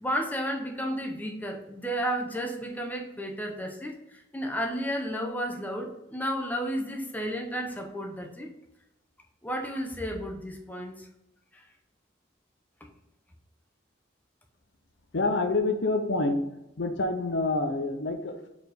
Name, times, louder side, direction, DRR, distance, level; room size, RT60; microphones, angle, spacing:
voice 1, 0.0-8.5 9.4-11.1 11.5-11.6, equal, 10° left, 2 dB, 0.8 m, -32 dB
voice 2, 15.1-16.4 16.8-18.5, left 2 dB, 65° left, 6 dB, 0.7 m, -27 dB
4.8 x 4.2 x 5.2 m, 0.89 s
head